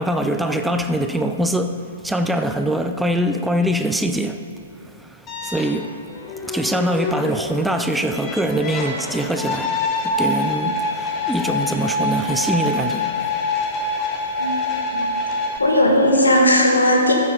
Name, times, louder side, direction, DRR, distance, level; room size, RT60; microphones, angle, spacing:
voice 1, 0.0-4.4 4.8-6.0 6.5-9.7 10.0-13.1, right 1 dB, 5° right, 7 dB, 0.4 m, -23 dB
sound 1, 5.3-15.6, left 2 dB, 20° left, 1.2 m, -25 dB
voice 2, 14.4-15.0 15.6-17.1, left 1 dB, 75° left, 0 dB, 1.7 m, -17 dB
13.5 x 7.1 x 4.1 m, 2.5 s
figure-of-eight pair, 115°, 0 cm